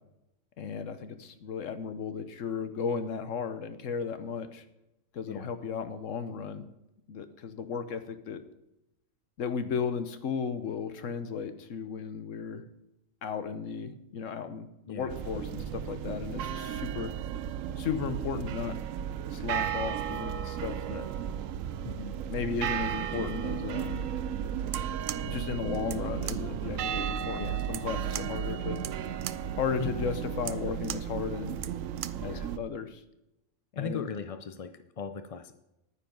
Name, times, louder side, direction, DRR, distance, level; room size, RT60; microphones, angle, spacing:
voice 1, 0.6-4.6 5.1-6.6 7.1-8.4 9.4-12.6 13.2-17.1 17.8-18.7 19.3-21.0 22.3-24.0 25.2-28.8 29.6-31.6 32.2-33.0 33.7-34.0, left 6 dB, 75° left, 10 dB, 1.3 m, -35 dB
sound 1, 15.1-32.6, right 9 dB, 90° right, 1.0 m, -34 dB
voice 2, 21.8-22.2 27.4-27.6 29.8-30.1 32.2-32.5 33.8-35.5, left 6 dB, 55° left, 9 dB, 0.4 m, -38 dB
sound 2, 24.6-32.3, right 10 dB, 65° right, 0.5 m, -42 dB
10.0 x 9.5 x 5.3 m, 0.88 s
omnidirectional pair, 1.3 m